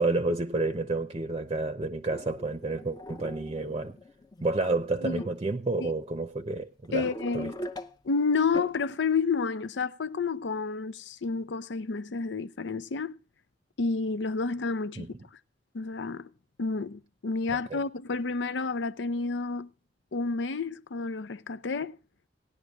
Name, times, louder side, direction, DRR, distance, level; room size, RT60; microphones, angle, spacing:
voice 1, 0.0-4.0 4.4-7.5 15.0-15.1 17.5-17.8, right 2 dB, 30° right, 0.7 m, -30 dB
sound 1, 2.1-4.5 5.2-5.4 6.1-6.2 6.7-8.1 8.4-8.8, left 1 dB, 20° left, 0.7 m, -41 dB
voice 2, 6.9-7.5 8.0-13.2 13.8-15.1 15.7-16.3 16.6-19.7 20.1-22.0, left 4 dB, 80° left, 0.6 m, -30 dB
18.0 x 11.0 x 2.4 m
head